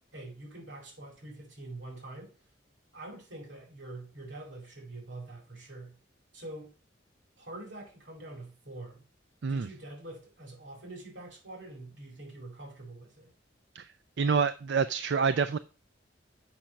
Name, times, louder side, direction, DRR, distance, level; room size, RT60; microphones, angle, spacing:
voice 1, 0.1-2.3 2.9-6.0 6.3-6.7 7.4-9.1 9.5-13.3, right 2 dB, 85° right, 4.9 m, -45 dB
voice 2, 14.2-15.6, right 5 dB, 65° right, 0.5 m, -27 dB
7.4 x 5.7 x 6.4 m
head